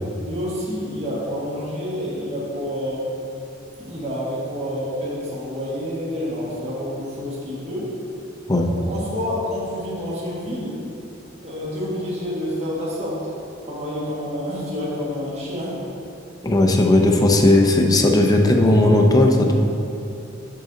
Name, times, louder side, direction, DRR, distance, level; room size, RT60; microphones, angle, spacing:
voice 1, 0.1-3.0 3.8-7.9 8.6-10.8 11.4-13.2 13.6-15.8, equal, 35° right, -7 dB, 1.5 m, -28 dB
voice 2, 16.4-19.5, left 1 dB, 20° left, 2 dB, 0.6 m, -16 dB
10.0 x 3.9 x 3.9 m, 2.8 s
head